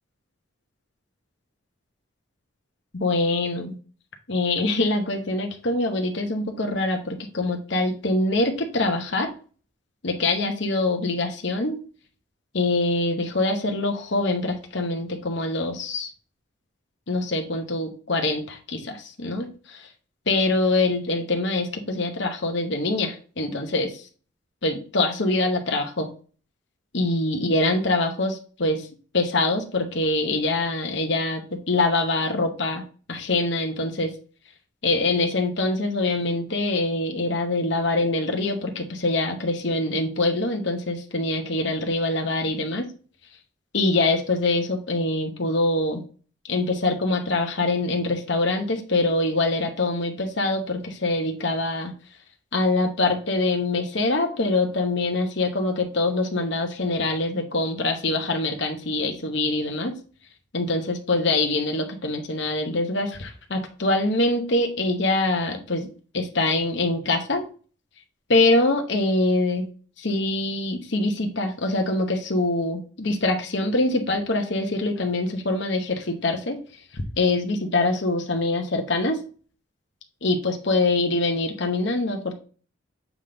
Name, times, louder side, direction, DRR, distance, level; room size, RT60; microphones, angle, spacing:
voice 1, 3.0-3.7 4.3-9.3 10.0-11.8 12.5-16.1 17.1-19.9 20.3-24.0 24.6-26.1 26.9-28.9 29.1-31.4 31.7-32.8 33.1-34.1 34.8-42.8 43.7-46.0 46.5-51.9 52.5-59.9 60.5-65.9 66.1-67.4 68.3-69.7 70.0-76.6 76.9-79.2 80.2-82.3, left 2 dB, 55° left, 4 dB, 1.0 m, -24 dB
7.3 x 3.6 x 3.8 m, 0.39 s
head